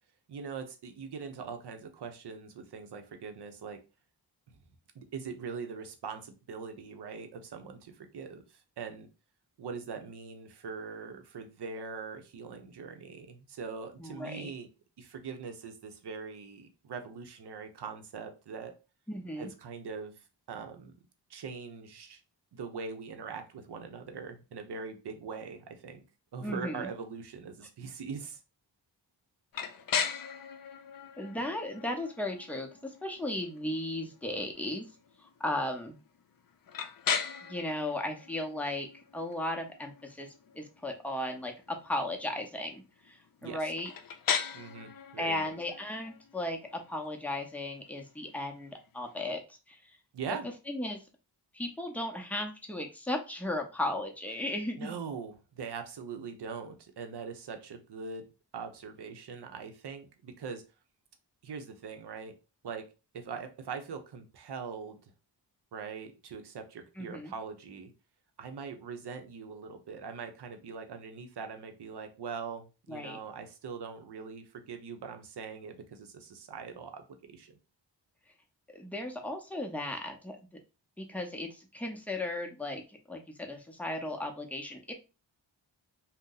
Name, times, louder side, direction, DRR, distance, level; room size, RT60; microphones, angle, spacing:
voice 1, 0.3-3.8 4.5-4.6 4.9-9.1 9.6-14.7 15.0-18.7 19.4-20.1 20.5-20.9 21.3-22.2 22.5-26.0 26.3-28.4 43.4-43.6 44.5-45.5 50.1-50.5 54.8-58.2 58.5-60.6 61.4-62.3 62.6-62.9 63.1-65.0 65.7-67.9 68.4-77.6, right 5 dB, 65° right, 6 dB, 0.7 m, -42 dB
voice 2, 14.0-14.5 19.1-19.5 26.4-26.9 31.2-34.9 35.2-36.0 37.4-38.9 39.1-43.9 45.2-50.0 50.7-51.0 51.5-54.9 67.0-67.3 72.9-73.2 78.7-80.4 81.0-84.9, left 1 dB, 5° left, 2 dB, 0.6 m, -36 dB
sound 1, 29.5-49.3, left 7 dB, 50° left, 0.5 m, -39 dB
2.6 x 2.1 x 3.7 m, 0.30 s
wide cardioid pair, 75°, 43 cm